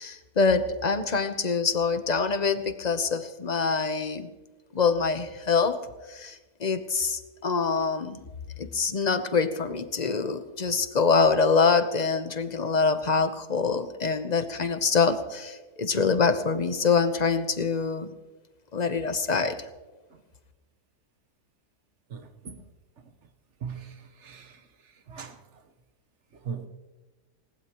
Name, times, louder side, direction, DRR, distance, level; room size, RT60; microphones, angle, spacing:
voice 1, 0.0-4.3 4.7-5.8 6.1-8.2 8.6-18.1 18.7-19.6, left 5 dB, 35° left, 9 dB, 0.8 m, -25 dB
voice 2, 22.1-22.6 23.6-23.8 24.2-24.5 25.1-25.3 26.5-26.7, right 6 dB, 50° right, 9 dB, 1.3 m, -37 dB
20.5 x 19.0 x 3.0 m, 1.2 s
omnidirectional pair, 1.7 m